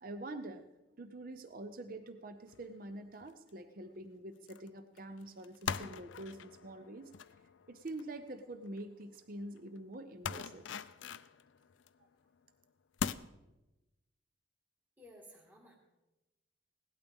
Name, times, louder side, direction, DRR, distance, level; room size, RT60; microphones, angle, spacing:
voice 1, 0.0-0.7 1.0-7.1 7.7-10.6 12.0-12.1, right 1 dB, 45° right, 9 dB, 0.6 m, -46 dB
sound 1, 2.5-2.8 3.2-3.5 4.5-4.7 5.0-8.8 9.2-9.3 9.6-9.7 10.2-12.0 12.4-12.5 13.0-13.1, left 6 dB, 80° left, 0.5 m, -42 dB
voice 2, 15.0-15.7, equal, 10° right, -1 dB, 1.7 m, -56 dB
17.5 x 12.0 x 3.6 m, 1.0 s
head